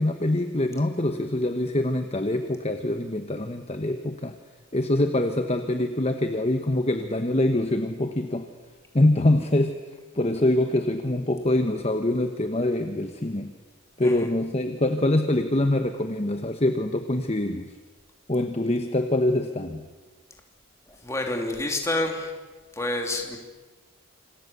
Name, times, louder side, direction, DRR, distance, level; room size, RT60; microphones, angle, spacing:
voice 1, 0.0-4.3 4.7-8.5 8.9-9.8 10.1-13.5 14.0-17.7 18.3-19.9, left 1 dB, 30° left, 7 dB, 1.1 m, -24 dB
voice 2, 21.0-22.3 22.7-23.4, left 2 dB, 15° left, 2 dB, 3.0 m, -28 dB
27.0 x 27.0 x 6.9 m, 1.3 s
head